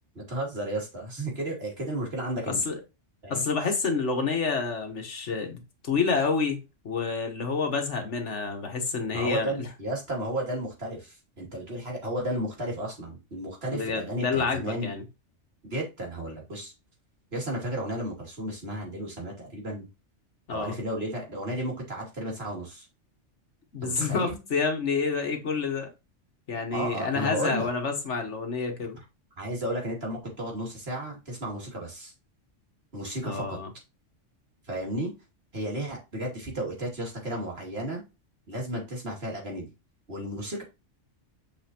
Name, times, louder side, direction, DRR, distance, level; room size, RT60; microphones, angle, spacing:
voice 1, 0.1-2.6 3.2-3.4 9.1-14.9 15.6-16.7 17.3-19.9 20.5-22.9 23.8-24.4 26.7-27.7 29.4-32.1 32.9-33.6 34.7-35.1 35.5-38.0 38.5-39.7 40.1-40.6, right 1 dB, 55° right, 2.9 m, -33 dB
voice 2, 2.5-2.8 3.3-9.7 13.7-15.0 20.5-20.8 23.7-25.9 26.5-29.0 33.2-33.7, left 4 dB, 70° left, 1.8 m, -28 dB
6.9 x 5.4 x 2.9 m
omnidirectional pair, 1.3 m